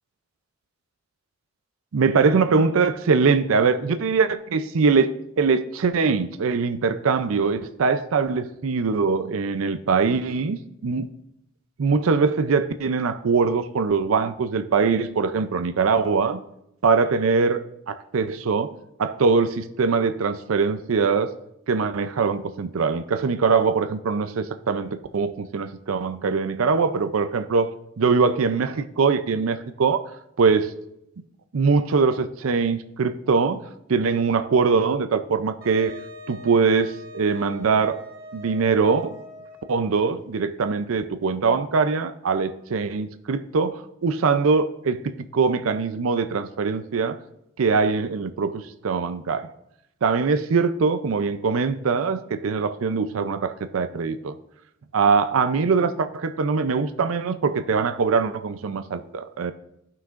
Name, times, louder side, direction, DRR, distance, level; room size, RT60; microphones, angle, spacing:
voice 1, 1.9-5.1 5.4-11.1 11.8-16.4 16.8-18.7 19.0-21.3 21.7-27.7 28.0-30.0 30.4-30.7 31.5-33.6 33.9-36.0 36.3-38.0 38.3-39.1 39.7-47.2 47.6-49.5 50.0-54.4 54.9-59.5, right 5 dB, 85° right, 10 dB, 0.5 m, -22 dB
Wind instrument woodwind instrument, 35.6-40.0, left 1 dB, 45° right, 1.3 m, -42 dB
15.5 x 5.8 x 2.5 m, 0.80 s
head